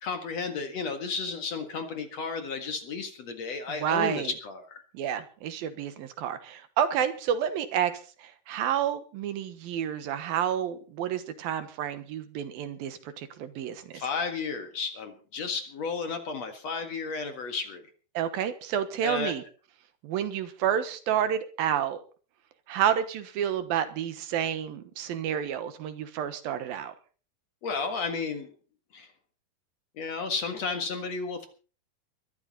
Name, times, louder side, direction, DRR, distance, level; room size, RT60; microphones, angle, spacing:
voice 1, 0.0-4.8 13.9-17.8 19.0-19.4 27.6-28.5 28.9-29.1 30.0-31.5, left 4 dB, 50° left, 7 dB, 2.5 m, -33 dB
voice 2, 3.8-4.3 4.9-7.9 8.2-14.0 18.1-19.4 20.0-22.0 22.7-26.9, right 9 dB, 75° right, 11 dB, 3.1 m, -30 dB
21.5 x 13.0 x 4.2 m, 0.38 s
omnidirectional pair, 4.3 m